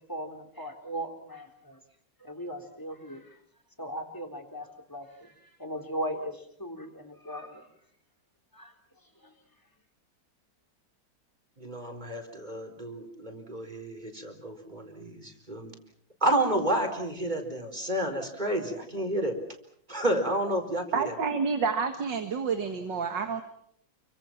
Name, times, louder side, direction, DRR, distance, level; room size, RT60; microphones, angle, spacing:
voice 1, 0.1-1.8 2.2-3.4 3.8-7.7 8.5-8.7 9.2-9.3, equal, 10° left, 6 dB, 3.9 m, -38 dB
voice 2, 11.6-15.7 16.2-19.4 19.9-21.1, right 1 dB, 25° right, 4 dB, 4.4 m, -30 dB
voice 3, 20.9-23.4, right 5 dB, 90° right, 6 dB, 2.5 m, -29 dB
29.0 x 24.5 x 6.0 m, 0.69 s
omnidirectional pair, 1.9 m